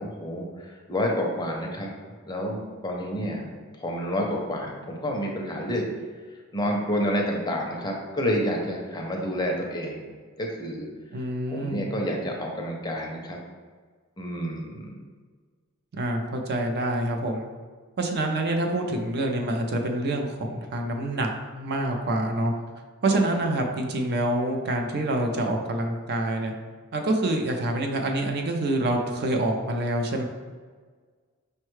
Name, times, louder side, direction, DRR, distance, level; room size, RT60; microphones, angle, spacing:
voice 1, 0.0-1.9 2.3-3.5 3.7-5.9 6.5-10.0 10.4-10.9 11.5-13.4 14.2-15.0 23.1-23.2, equal, 20° left, 0 dB, 0.5 m, -29 dB
voice 2, 11.1-11.9 15.9-17.5 18.0-22.5 23.0-26.5 26.9-30.2, right 1 dB, 50° right, 3 dB, 0.5 m, -26 dB
5.4 x 2.2 x 3.1 m, 1.5 s
head